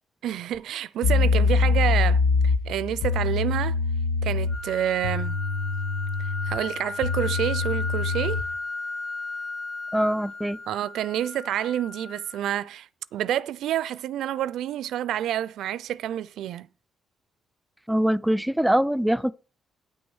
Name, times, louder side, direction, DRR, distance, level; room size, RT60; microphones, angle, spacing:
voice 1, 0.2-3.8 4.2-5.4 6.5-8.4 10.7-16.7, right 11 dB, 80° right, 0.4 m, -28 dB
sound 1, 0.5-0.6 1.0-8.5, left 4 dB, 90° left, 0.8 m, -24 dB
sound 2, 4.5-12.5, left 3 dB, 30° left, 2.1 m, -35 dB
voice 2, 9.9-10.6 17.9-19.3, equal, 5° right, 0.4 m, -23 dB
8.8 x 6.1 x 6.2 m
cardioid pair, 90°, 0 cm